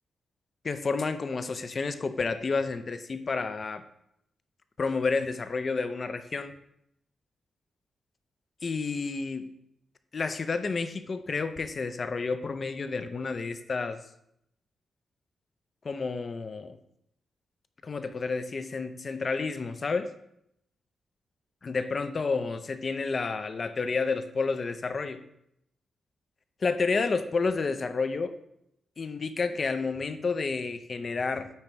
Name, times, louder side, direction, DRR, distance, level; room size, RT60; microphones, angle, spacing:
voice 1, 0.6-3.8 4.8-6.5 8.6-9.5 10.1-14.0 15.8-16.8 17.8-20.1 21.6-25.2 26.6-28.4 29.0-31.5, left 4 dB, 45° left, 10 dB, 0.5 m, -30 dB
8.6 x 3.0 x 4.5 m, 0.76 s
cardioid pair, 105°, 0 cm